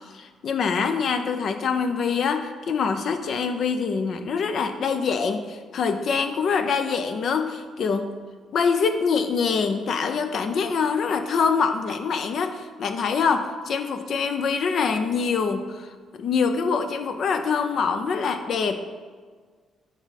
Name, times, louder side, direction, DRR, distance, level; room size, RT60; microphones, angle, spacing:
voice 1, 0.1-8.1 8.5-18.8, left 5 dB, 60° left, 8 dB, 0.6 m, -25 dB
10.0 x 3.6 x 4.1 m, 1.6 s
cardioid pair, 90°, 0 cm